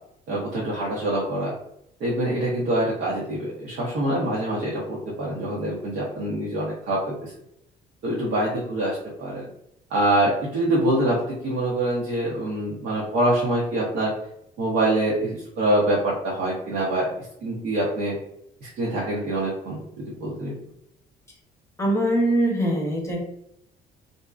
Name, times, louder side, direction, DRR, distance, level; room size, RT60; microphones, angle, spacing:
voice 1, 0.3-1.5 2.0-7.3 8.0-9.4 9.9-14.1 14.6-18.2 18.6-20.5, right 1 dB, 70° right, -5 dB, 0.8 m, -25 dB
voice 2, 21.8-23.2, right 1 dB, 15° left, -1 dB, 0.8 m, -22 dB
2.6 x 2.1 x 2.4 m, 0.77 s
cardioid pair, 110°, 17 cm